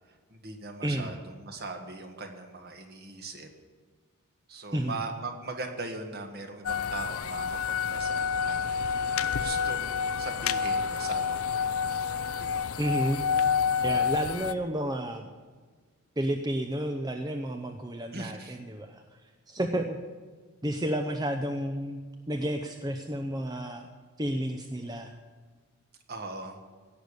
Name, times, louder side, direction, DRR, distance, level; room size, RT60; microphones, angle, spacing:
voice 1, 0.3-3.5 4.5-8.8 9.3-11.7 12.5-12.6 18.1-18.6 26.1-26.6, right 3 dB, 45° right, 4 dB, 1.7 m, -40 dB
voice 2, 0.8-1.2 4.7-5.0 12.8-13.2 13.8-15.3 16.2-19.2 19.5-20.0 20.6-22.0 22.3-23.9 24.2-25.1, right 1 dB, 20° right, 5 dB, 0.7 m, -31 dB
sound 1, 6.7-14.5, left 6 dB, 75° left, 0.6 m, -28 dB
17.0 x 6.8 x 9.8 m, 1.5 s
head